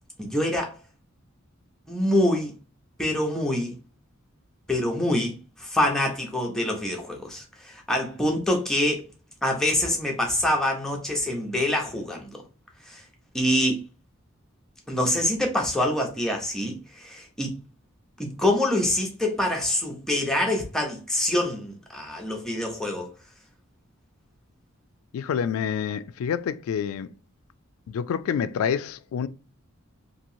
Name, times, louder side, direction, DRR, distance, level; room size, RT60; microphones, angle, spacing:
voice 1, 0.2-0.8 1.9-2.5 3.0-3.8 4.7-9.0 9.4-12.3 12.9-13.0 13.3-13.8 14.9-17.5 18.2-23.1, left 1 dB, 5° left, 0.6 m, -25 dB
voice 2, 25.1-27.1 27.9-29.3, left 7 dB, 80° left, 0.3 m, -27 dB
2.9 x 2.7 x 2.6 m
head